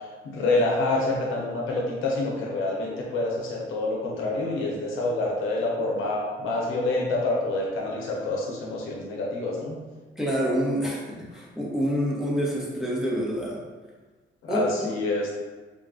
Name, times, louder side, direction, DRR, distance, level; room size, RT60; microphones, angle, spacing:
voice 1, 0.2-9.8 14.4-15.3, left 2 dB, 90° left, -2 dB, 0.8 m, -27 dB
voice 2, 10.2-13.6 14.5-14.9, equal, 5° right, -4 dB, 1.0 m, -27 dB
3.5 x 2.4 x 3.8 m, 1.3 s
cardioid pair, 90°, 20 cm